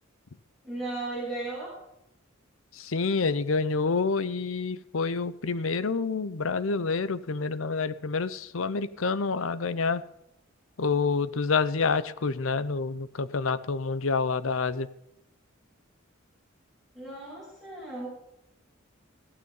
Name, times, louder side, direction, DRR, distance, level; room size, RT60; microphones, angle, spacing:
voice 1, 0.6-1.7 16.9-18.1, right 2 dB, ahead, -7 dB, 6.2 m, -35 dB
voice 2, 2.7-10.0 10.8-14.9, left 4 dB, 75° left, 15 dB, 0.7 m, -28 dB
15.5 x 9.4 x 5.4 m, 0.81 s
head